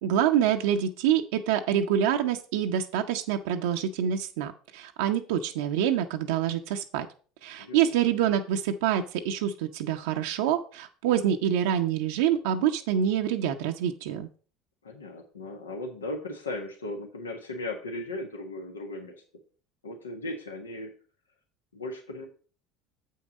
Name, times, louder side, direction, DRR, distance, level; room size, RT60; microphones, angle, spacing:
voice 1, 0.0-7.1 7.4-14.3, right 9 dB, 70° right, 4 dB, 0.6 m, -26 dB
voice 2, 7.6-7.9 14.8-19.2 19.8-20.9 21.7-22.3, left 2 dB, 85° left, 3 dB, 1.3 m, -37 dB
7.7 x 5.6 x 5.2 m, 0.40 s
hypercardioid pair, 70°, 0 cm